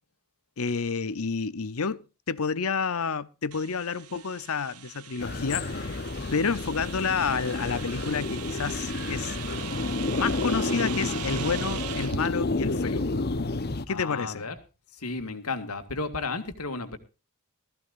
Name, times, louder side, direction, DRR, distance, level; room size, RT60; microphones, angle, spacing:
voice 1, 0.6-6.0 6.3-9.4 10.1-13.0 13.9-14.4, left 5 dB, 70° left, 0.8 m, -30 dB
sound 1, 3.5-12.3, right 9 dB, 85° right, 0.7 m, -40 dB
sound 2, 5.2-13.9, left 2 dB, 45° left, 0.9 m, -30 dB
voice 2, 13.9-14.6 14.9-17.0, left 3 dB, 85° left, 2.1 m, -33 dB
19.0 x 14.5 x 2.6 m
head